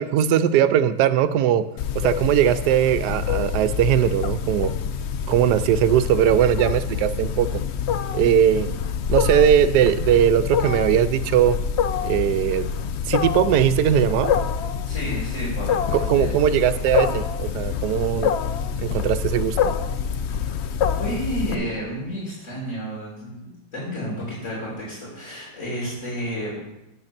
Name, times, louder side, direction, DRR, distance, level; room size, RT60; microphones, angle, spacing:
voice 1, 0.0-1.7 1.9-4.7 5.3-7.6 8.1-8.7 9.1-11.6 12.0-12.7 13.1-14.3 15.9-18.3 18.8-19.8, right 10 dB, 85° right, 12 dB, 1.2 m, -20 dB
Wild animals, 1.8-21.5, left 7 dB, 75° left, 0.6 m, -26 dB
voice 2, 14.8-16.3 21.0-26.5, equal, 50° left, -7 dB, 3.4 m, -31 dB
8.8 x 6.5 x 5.9 m, 0.93 s
omnidirectional pair, 1.7 m